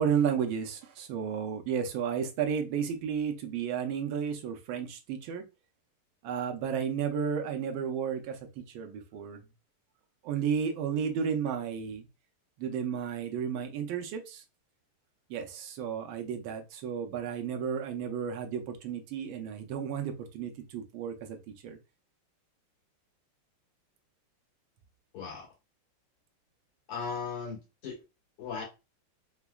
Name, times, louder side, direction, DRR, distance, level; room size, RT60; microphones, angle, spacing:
voice 1, 0.0-5.4 6.2-9.4 10.2-12.1 12.6-14.4 15.3-21.8, right 7 dB, 75° right, 1.3 m, -33 dB
voice 2, 25.1-25.5 26.9-28.0 28.4-28.6, left 5 dB, 85° left, 2.5 m, -37 dB
4.8 x 2.1 x 2.2 m
omnidirectional pair, 2.4 m